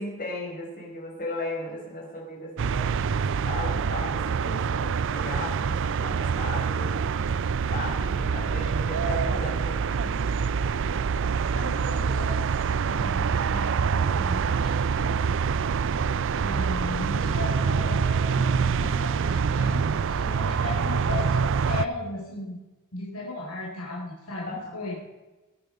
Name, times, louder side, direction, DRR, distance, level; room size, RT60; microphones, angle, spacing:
voice 1, 0.0-6.9 7.7-10.2 24.4-24.8, left 1 dB, 40° left, -3 dB, 5.5 m, -36 dB
sound 1, 2.6-21.9, right 6 dB, 60° right, 0.5 m, -25 dB
voice 2, 11.5-15.3 16.4-22.6 22.9-25.0, left 2 dB, 75° left, -3 dB, 4.1 m, -36 dB
20.5 x 8.7 x 5.5 m, 1.1 s
head